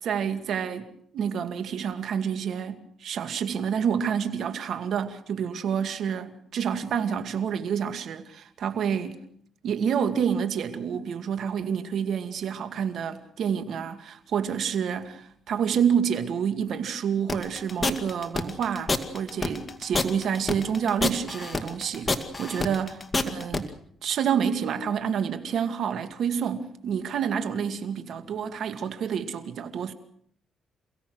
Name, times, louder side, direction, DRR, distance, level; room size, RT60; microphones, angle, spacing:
voice 1, 0.0-9.2 9.6-22.1 22.4-23.7 24.0-29.9, right 7 dB, 65° right, 2.2 m, -28 dB
sound 1, 17.3-23.6, left 3 dB, 20° left, 2.2 m, -27 dB
28.0 x 16.5 x 6.4 m
cardioid pair, 90°, 0 cm